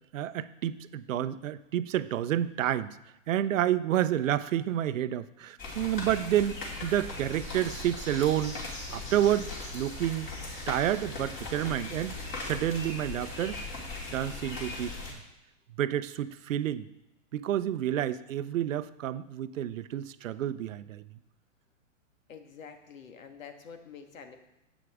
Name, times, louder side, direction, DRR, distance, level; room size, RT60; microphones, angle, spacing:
voice 1, 0.1-3.0 3.3-8.6 8.9-10.3 10.7-12.2 12.4-13.6 14.1-15.2 15.8-16.8 17.3-21.0, right 11 dB, 75° right, 14 dB, 0.7 m, -29 dB
sound 1, 5.6-15.1, left 2 dB, 30° left, 2.7 m, -39 dB
voice 2, 22.3-24.4, left 6 dB, 80° left, 7 dB, 1.5 m, -47 dB
9.8 x 8.3 x 3.5 m, 0.88 s
hypercardioid pair, 135°, 39 cm